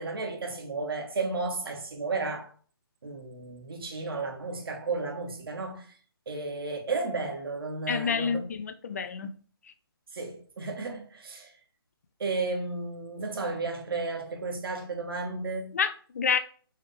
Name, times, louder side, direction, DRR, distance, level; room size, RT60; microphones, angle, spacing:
voice 1, 0.0-2.5 3.0-5.9 6.3-8.5 10.1-11.5 12.2-15.7, right 3 dB, 65° right, 1.5 m, -33 dB
voice 2, 7.9-9.3 15.7-16.4, left 6 dB, 40° left, 0.3 m, -28 dB
4.5 x 3.4 x 3.3 m
hypercardioid pair, 160°, 13 cm